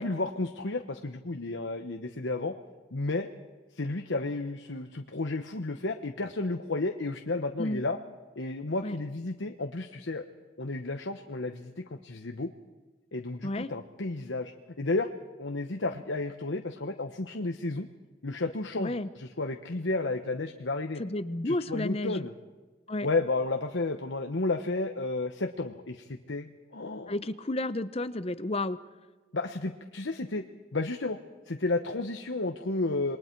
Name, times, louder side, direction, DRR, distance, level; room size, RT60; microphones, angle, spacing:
voice 1, 0.0-2.5 2.9-3.3 3.7-8.0 8.4-10.2 10.6-12.5 13.1-14.5 14.8-15.1 15.4-17.9 18.2-21.0 21.4-22.3 23.0-27.2 29.3-30.4 30.7-31.2 31.5-33.2, left 2 dB, 70° left, 5 dB, 1.0 m, -32 dB
voice 2, 18.8-19.1 21.0-22.3 22.9-23.1 27.1-28.8, left 1 dB, 30° left, 12 dB, 0.7 m, -31 dB
27.5 x 21.5 x 4.6 m, 1.3 s
head